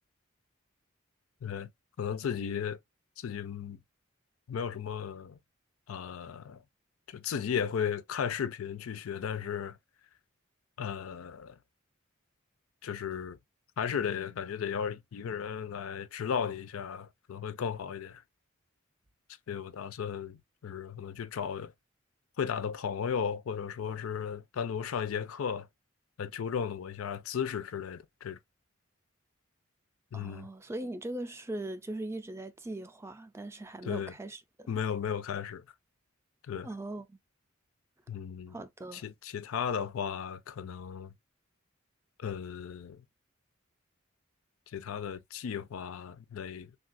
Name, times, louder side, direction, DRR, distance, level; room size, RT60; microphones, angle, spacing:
voice 1, 2.0-2.8 3.2-3.8 4.5-5.4 5.9-6.6 7.1-9.8 10.8-11.6 12.8-13.4 13.8-18.2 19.5-21.7 22.4-25.7 26.2-28.4 30.1-30.5 33.8-34.1 34.7-35.6 36.5-36.7 38.1-38.6 38.9-41.1 42.2-43.0 44.7-46.7, left 7 dB, 85° left, 0.4 m, -35 dB
voice 2, 30.1-34.8 36.6-37.2 38.5-39.0, right 1 dB, 15° right, 0.3 m, -40 dB
3.5 x 2.3 x 2.4 m
head